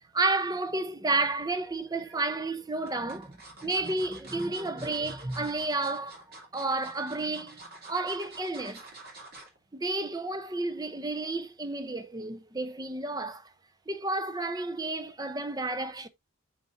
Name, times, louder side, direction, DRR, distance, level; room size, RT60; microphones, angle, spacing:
voice 1, 0.1-6.2 6.5-8.8 9.7-13.5 13.9-16.1, right 2 dB, 20° right, 0.6 m, -31 dB
sound 1, 1.6-2.2 2.9-9.6 10.0-10.2 10.5-10.6, right 2 dB, 45° right, 2.7 m, -48 dB
7.8 x 6.0 x 2.6 m
head